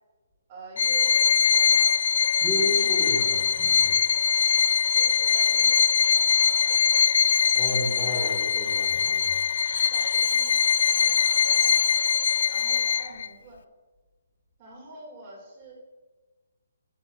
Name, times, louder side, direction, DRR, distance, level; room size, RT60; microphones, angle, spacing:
voice 1, 0.5-1.9 2.5-3.2 4.9-7.1 7.7-8.5 9.9-11.9 12.5-13.6 14.6-15.7, right 2 dB, 30° right, -2 dB, 2.7 m, -46 dB
Bowed string instrument, 0.8-13.3, left 7 dB, 55° left, 0.3 m, -22 dB
voice 2, 2.4-4.0 7.5-9.4, left 1 dB, 5° left, -8 dB, 2.2 m, -32 dB
12.5 x 10.5 x 2.6 m, 1.3 s
hypercardioid pair, 160°, 0 cm